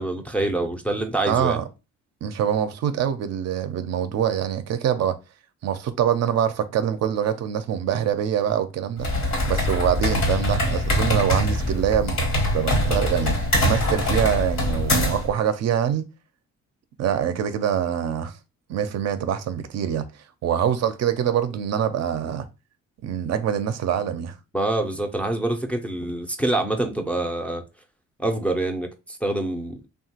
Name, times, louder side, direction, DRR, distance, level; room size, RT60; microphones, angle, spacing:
voice 1, 0.0-1.6 24.5-27.6 28.2-29.8, right 2 dB, 5° left, 0.4 m, -26 dB
voice 2, 1.3-1.6 2.2-5.2 5.6-12.2 12.5-16.1 17.0-18.3 18.7-20.0 20.4-22.5 23.0-24.4, right 9 dB, 60° right, 0.4 m, -24 dB
sound 1, 9.0-15.3, left 1 dB, 65° left, 1.1 m, -23 dB
2.8 x 2.2 x 2.8 m
cardioid pair, 90°, 30 cm